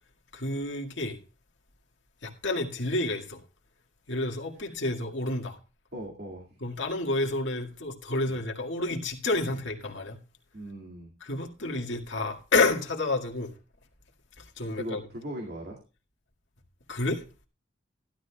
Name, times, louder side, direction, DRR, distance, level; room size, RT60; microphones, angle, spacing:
voice 1, 0.3-1.2 2.2-3.4 4.1-5.6 6.6-10.2 11.2-13.5 14.4-15.0 16.9-17.2, left 2 dB, 80° left, 2.0 m, -29 dB
voice 2, 5.9-6.5 8.3-8.4 9.5-9.6 10.5-11.1 14.7-15.8, equal, 60° right, 2.3 m, -39 dB
15.5 x 12.0 x 2.3 m
head